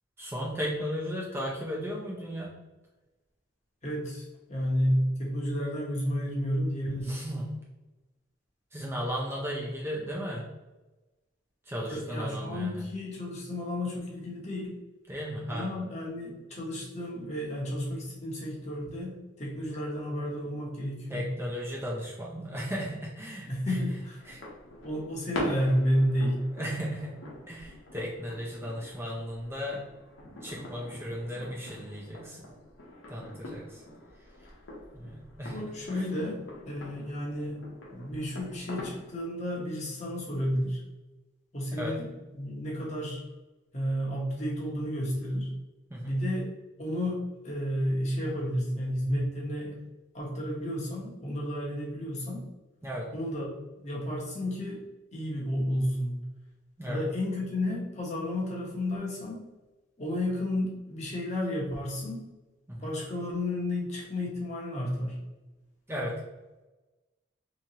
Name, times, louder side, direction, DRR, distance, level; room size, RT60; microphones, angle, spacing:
voice 1, 0.2-2.5 7.0-7.5 8.7-10.4 11.7-12.8 15.1-15.7 21.1-23.8 24.2-24.4 26.5-27.1 27.5-29.8 30.4-32.5 33.1-33.8 34.9-35.7 41.7-41.9 45.9-46.2 52.8-53.1 56.8-57.0 62.7-62.9 65.9-66.1, equal, 10° right, -4 dB, 0.6 m, -35 dB
voice 2, 3.8-7.2 11.9-14.7 15.5-21.3 23.4-24.2 24.8-26.4 35.5-36.4 36.6-37.6 37.9-40.8 41.5-43.2 43.7-45.5 46.0-46.5 46.8-49.7 50.1-52.5 53.1-53.5 53.8-54.8 55.1-56.2 56.9-59.4 60.0-62.2 62.8-65.2, equal, 35° left, -3 dB, 1.0 m, -31 dB
sound 1, 24.2-39.2, left 1 dB, 80° left, 0.9 m, -43 dB
3.5 x 3.0 x 2.8 m, 1.1 s
head